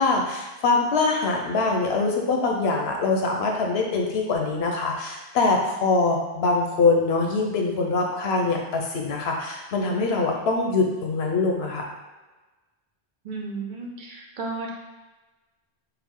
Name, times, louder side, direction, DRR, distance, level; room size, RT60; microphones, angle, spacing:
voice 1, 0.0-11.8, left 3 dB, 85° left, 1 dB, 0.9 m, -23 dB
voice 2, 13.2-14.7, right 3 dB, 55° right, -1 dB, 0.7 m, -33 dB
4.6 x 2.0 x 3.6 m, 1.2 s
omnidirectional pair, 1.0 m